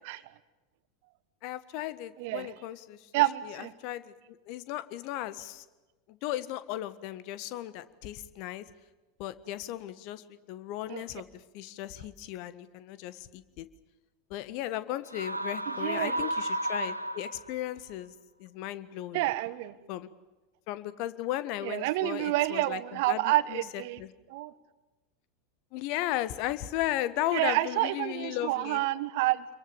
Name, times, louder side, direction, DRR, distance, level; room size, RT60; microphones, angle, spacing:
voice 1, 1.4-4.1 4.4-5.6 6.1-8.6 9.2-13.7 14.3-18.1 18.4-19.2 19.9-20.1 20.7-23.2 23.5-24.1 25.7-28.8, left 14 dB, 50° left, 14 dB, 1.5 m, -36 dB
voice 2, 2.2-2.5 3.1-3.7 10.9-11.0 15.8-16.3 19.1-19.7 21.6-24.0 24.3-24.5 27.3-29.5, right 17 dB, 55° right, 16 dB, 1.2 m, -29 dB
sound 1, 15.1-17.7, right 1 dB, 90° right, 1.4 m, -33 dB
28.5 x 22.5 x 7.1 m, 1.1 s
figure-of-eight pair, 85°, 0 cm